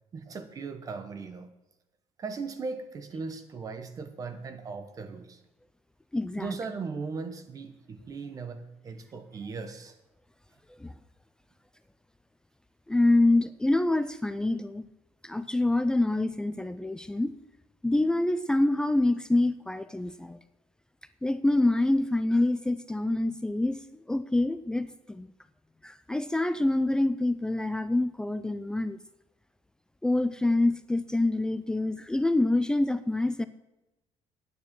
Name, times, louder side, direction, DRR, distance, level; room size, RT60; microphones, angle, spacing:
voice 1, 0.1-1.5 2.2-5.4 6.4-10.0, right 4 dB, 30° right, 9 dB, 1.1 m, -38 dB
voice 2, 6.1-6.6 10.8-10.9 12.9-14.9 15.2-17.3 17.8-20.4 21.2-23.8 24.1-25.3 25.8-29.0 30.0-33.5, left 2 dB, 5° left, 12 dB, 0.4 m, -26 dB
9.5 x 9.4 x 6.0 m, 1.0 s
cardioid pair, 155°, 11 cm